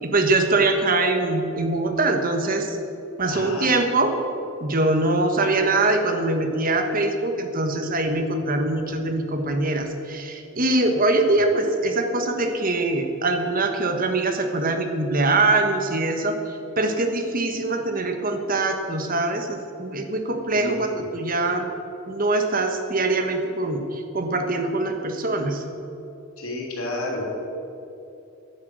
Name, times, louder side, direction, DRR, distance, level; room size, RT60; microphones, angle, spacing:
voice 1, 0.0-2.8 3.2-4.2 4.6-16.3 16.8-21.7 22.1-25.6, right 2 dB, 40° right, 5 dB, 1.4 m, -23 dB
voice 2, 3.3-3.8 20.5-20.9 26.4-27.2, left 2 dB, 90° left, -1 dB, 3.2 m, -31 dB
11.5 x 10.5 x 8.0 m, 2.9 s
head